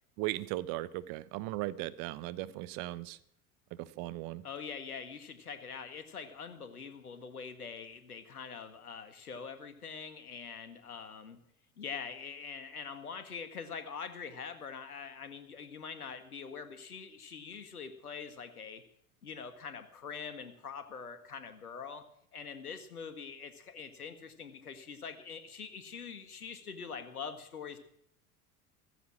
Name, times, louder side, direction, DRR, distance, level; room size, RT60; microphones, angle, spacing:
voice 1, 0.2-3.2 3.7-4.4, right 17 dB, 55° right, 16 dB, 1.3 m, -37 dB
voice 2, 4.4-11.4 11.8-18.8 19.2-22.0 22.3-27.8, left 6 dB, 90° left, 9 dB, 1.9 m, -44 dB
15.0 x 15.0 x 6.3 m, 0.67 s
hypercardioid pair, 80°, 43 cm